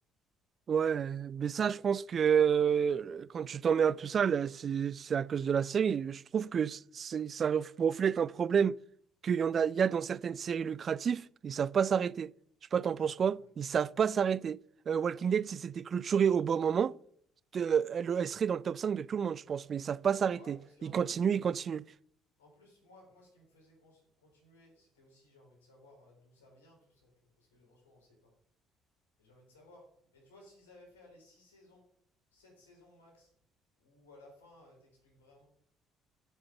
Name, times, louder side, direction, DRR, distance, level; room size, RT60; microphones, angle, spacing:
voice 1, 0.7-8.8 9.2-12.3 12.7-14.6 14.9-16.9 17.5-21.8, right 7 dB, 45° right, 0.3 m, -30 dB
voice 2, 15.1-15.6 20.3-21.2 22.4-28.3 29.2-31.8 32.3-33.3 33.8-35.5, left 1 dB, 85° left, 3.9 m, -60 dB
8.0 x 7.7 x 5.8 m
figure-of-eight pair, 50°, 0 cm